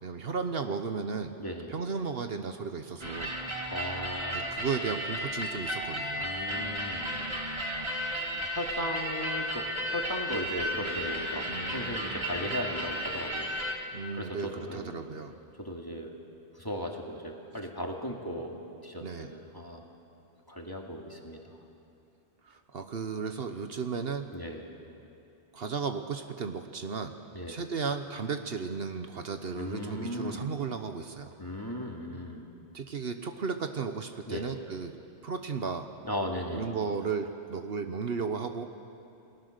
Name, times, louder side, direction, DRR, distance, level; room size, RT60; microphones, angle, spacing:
voice 1, 0.0-1.3 1.7-3.3 4.3-6.3 11.5-11.9 13.9-15.3 19.0-19.3 22.4-24.3 25.5-27.1 27.5-31.3 32.7-34.9 35.2-35.9 36.5-38.6, right 5 dB, 60° right, 7 dB, 1.1 m, -34 dB
voice 2, 1.4-1.7 3.3-4.6 6.2-7.1 8.4-15.0 15.6-16.1 16.5-19.8 20.5-21.5 24.3-24.6 27.3-27.6 29.5-30.5 31.4-32.5 34.3-34.5 36.0-36.7, equal, 20° left, 0 dB, 2.3 m, -37 dB
sound 1, 3.0-13.8, equal, 25° right, 2.1 m, -34 dB
28.5 x 19.5 x 6.6 m, 2.7 s
omnidirectional pair, 1.2 m